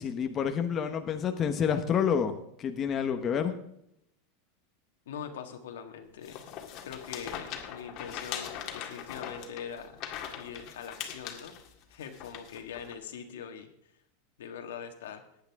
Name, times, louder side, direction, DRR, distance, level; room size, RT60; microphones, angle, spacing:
voice 1, 0.0-3.5, left 7 dB, 25° left, 6 dB, 1.0 m, -29 dB
voice 2, 5.1-6.5 6.8-11.6 11.9-13.7 14.4-15.2, left 7 dB, 90° left, 5 dB, 1.8 m, -42 dB
sound 1, 6.2-12.9, left 9 dB, 40° left, 1.8 m, -41 dB
16.0 x 10.0 x 3.6 m, 0.75 s
supercardioid pair, 150°, 0 cm